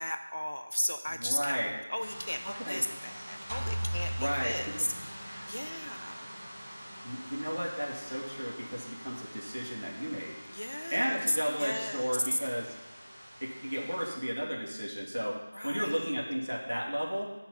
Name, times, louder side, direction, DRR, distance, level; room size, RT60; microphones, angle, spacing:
voice 1, 0.0-6.3 10.5-12.4 15.5-16.1, left 1 dB, 65° left, 7 dB, 0.9 m, -36 dB
voice 2, 1.2-1.7 2.6-2.8 4.2-4.5 5.3-5.5 7.0-10.4 10.9-12.7 13.4-15.4 15.6-17.3, equal, 75° right, -4 dB, 2.6 m, -33 dB
sound 1, 2.0-14.2, equal, 5° right, 1.2 m, -47 dB
sound 2, 3.5-5.3, equal, 40° right, 1.6 m, -36 dB
8.5 x 5.8 x 5.7 m, 1.2 s
figure-of-eight pair, 170°, 0 cm